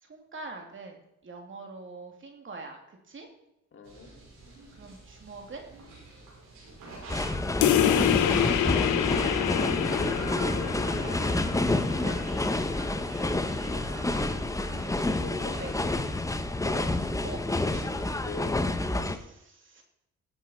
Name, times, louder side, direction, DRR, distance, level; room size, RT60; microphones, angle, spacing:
voice 1, 0.0-3.3 4.7-5.7 9.0-11.2 11.7-12.2 13.5-14.3 14.7-15.8 17.2-17.4 19.0-19.8, right 3 dB, 40° right, 3 dB, 2.8 m, -44 dB
voice 2, 3.7-4.1 15.0-15.6 18.2-19.2, left 4 dB, 40° left, 3 dB, 2.5 m, -42 dB
sound 1, 3.8-18.1, right 2 dB, 85° right, 5.6 m, -46 dB
sound 2, 7.1-19.2, left 2 dB, 10° left, 0.9 m, -29 dB
sound 3, 7.6-12.7, left 10 dB, 80° left, 0.9 m, -27 dB
17.5 x 8.1 x 4.5 m, 0.81 s
cardioid pair, 90°, 30 cm